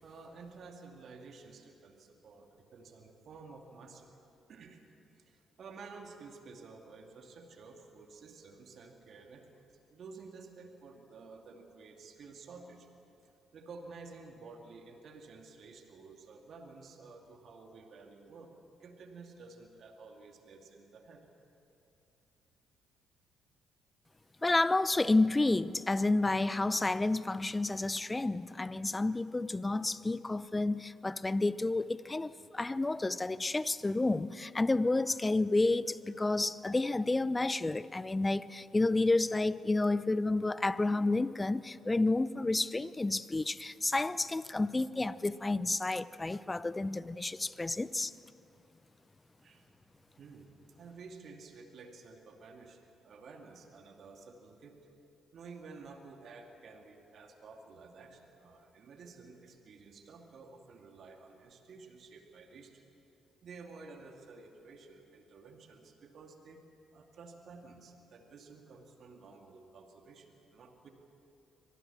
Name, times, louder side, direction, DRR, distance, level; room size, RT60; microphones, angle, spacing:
voice 1, 0.0-4.2 4.5-4.8 5.1-12.9 13.2-18.5 18.8-21.3 49.4-49.7 50.2-54.8 55.3-62.9 63.4-66.6 66.9-70.9, right 4 dB, 55° right, 2.5 m, -52 dB
voice 2, 24.4-48.1, left 2 dB, 20° left, 0.7 m, -30 dB
24.5 x 18.5 x 7.4 m
hypercardioid pair, 45°, 0 cm